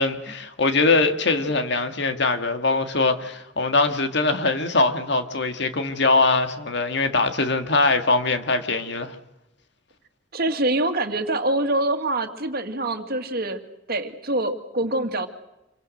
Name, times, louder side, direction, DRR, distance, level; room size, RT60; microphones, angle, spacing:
voice 1, 0.0-9.2, left 3 dB, 65° left, 2.0 m, -22 dB
voice 2, 10.3-13.6 13.9-15.3, right 2 dB, 55° right, 2.1 m, -25 dB
27.5 x 23.5 x 6.6 m
head